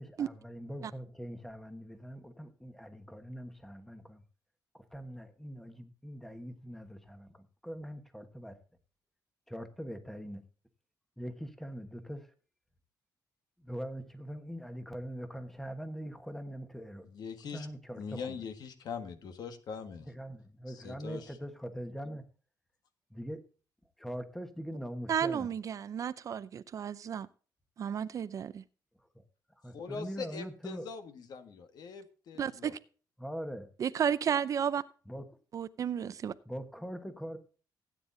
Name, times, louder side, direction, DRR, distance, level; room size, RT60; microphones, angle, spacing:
voice 1, 0.0-4.2 4.7-8.6 9.5-10.4 11.2-12.3 13.6-17.1 17.5-18.3 20.1-22.2 23.1-23.4 24.0-25.5 29.6-30.8 33.2-33.7 35.1-35.2 36.4-37.4, equal, 5° left, 1.3 m, -42 dB
voice 2, 17.0-17.7 17.9-20.1 20.7-21.4 29.7-32.7, left 5 dB, 65° left, 1.6 m, -42 dB
voice 3, 25.1-27.3 27.8-28.6 32.4-32.8 33.8-34.8 35.5-36.3, right 8 dB, 50° right, 0.5 m, -32 dB
16.5 x 9.2 x 2.7 m
cardioid pair, 140°, 7 cm